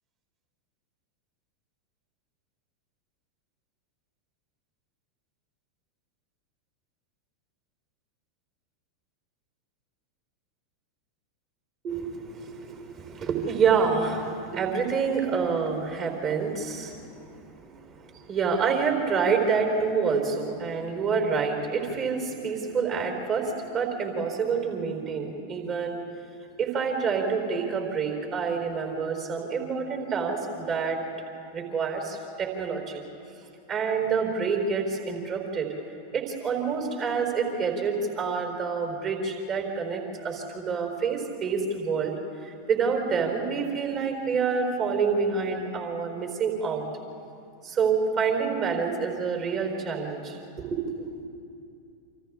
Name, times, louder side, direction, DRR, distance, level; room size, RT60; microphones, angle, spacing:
voice 1, 11.8-26.0 26.6-31.0 31.5-33.0 33.7-35.7 36.1-42.1 42.4-46.9 47.6-51.1, right 5 dB, 35° right, 3 dB, 4.2 m, -27 dB
28.5 x 26.5 x 3.7 m, 2.5 s
figure-of-eight pair, 90°, 0 cm